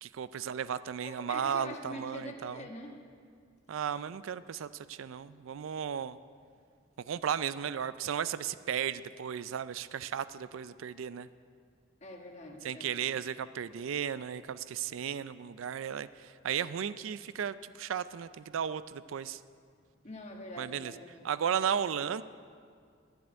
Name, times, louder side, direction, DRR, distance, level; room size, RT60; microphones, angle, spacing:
voice 1, 0.0-2.6 3.7-6.2 7.1-11.3 12.6-19.4 20.6-20.9 21.2-22.2, right 8 dB, 80° right, 15 dB, 0.4 m, -35 dB
voice 2, 1.0-2.9 12.0-13.2 20.0-21.2 21.6-21.7, left 1 dB, 35° left, 2 dB, 1.3 m, -45 dB
11.5 x 7.8 x 9.4 m, 2.2 s
head